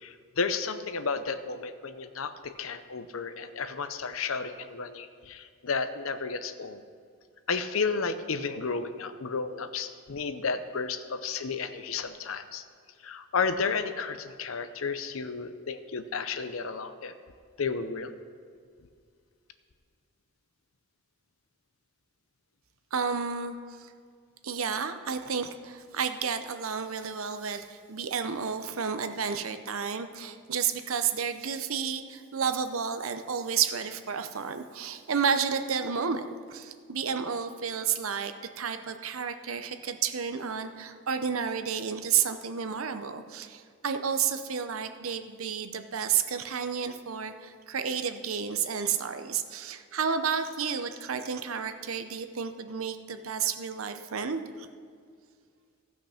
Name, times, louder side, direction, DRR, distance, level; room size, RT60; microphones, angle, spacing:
voice 1, 0.0-6.8 7.5-12.6 13.0-17.1 17.6-18.1, left 5 dB, 75° left, 10 dB, 0.7 m, -32 dB
voice 2, 22.9-23.9 24.4-54.7, right 6 dB, 85° right, 9 dB, 0.7 m, -31 dB
15.5 x 5.9 x 5.8 m, 2.1 s
head